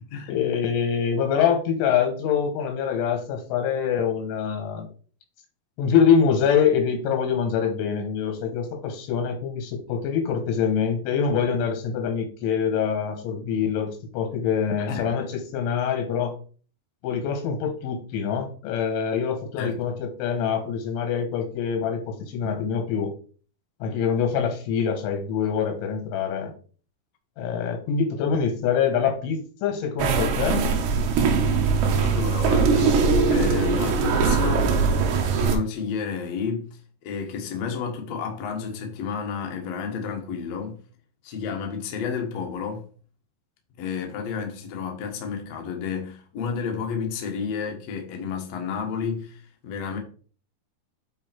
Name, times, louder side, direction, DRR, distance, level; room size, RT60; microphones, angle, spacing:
voice 1, 0.3-4.9 5.8-16.3 17.0-23.1 23.8-26.5 27.4-30.7, left 7 dB, 85° left, 3.8 m, -25 dB
sound 1, 30.0-35.6, right 5 dB, 70° right, 3.3 m, -21 dB
voice 2, 32.0-33.0 33.3-34.7 35.4-36.7 37.0-40.8 41.2-42.9 43.8-50.0, left 6 dB, 65° left, 1.7 m, -31 dB
9.2 x 4.3 x 4.5 m
omnidirectional pair, 5.4 m